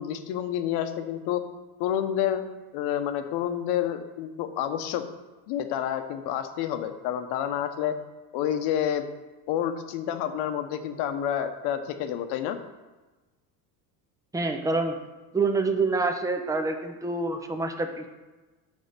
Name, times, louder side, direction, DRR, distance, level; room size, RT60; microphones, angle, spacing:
voice 1, 0.0-1.4 1.8-2.4 2.7-5.0 5.5-8.0 8.3-9.0 9.5-12.6, left 10 dB, 75° left, 8 dB, 0.9 m, -29 dB
voice 2, 14.3-14.9 15.3-18.1, right 3 dB, 10° right, 5 dB, 0.6 m, -26 dB
9.6 x 3.6 x 6.6 m, 1.2 s
cardioid pair, 140°, 40 cm